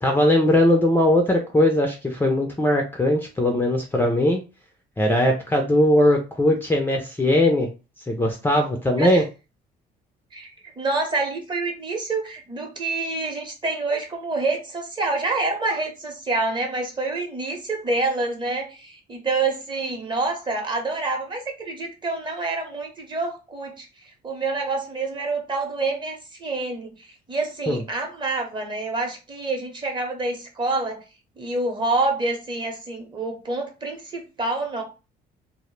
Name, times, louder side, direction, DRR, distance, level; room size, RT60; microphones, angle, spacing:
voice 1, 0.0-4.4 5.0-7.7 8.1-9.2 27.7-27.8, left 1 dB, 10° left, 2 dB, 0.4 m, -20 dB
voice 2, 10.3-31.0 31.4-34.8, right 3 dB, 30° right, 3 dB, 0.8 m, -27 dB
2.1 x 2.0 x 3.1 m, 0.30 s
cardioid pair, 110°, 17 cm